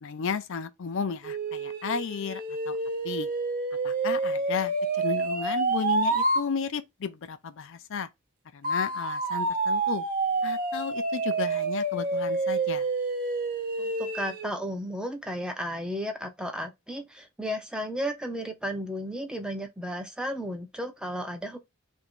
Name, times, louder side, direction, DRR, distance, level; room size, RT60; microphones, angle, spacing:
voice 1, 0.0-2.4 2.7-2.8 3.0-3.3 3.8-8.1 8.5-10.0 10.4-12.9, left 6 dB, 65° left, 0.5 m, -33 dB
sound 1, 1.2-6.5 8.6-14.5, right 3 dB, 40° right, 0.8 m, -28 dB
voice 2, 13.8-21.6, equal, 5° right, 0.6 m, -34 dB
3.0 x 2.6 x 4.4 m
head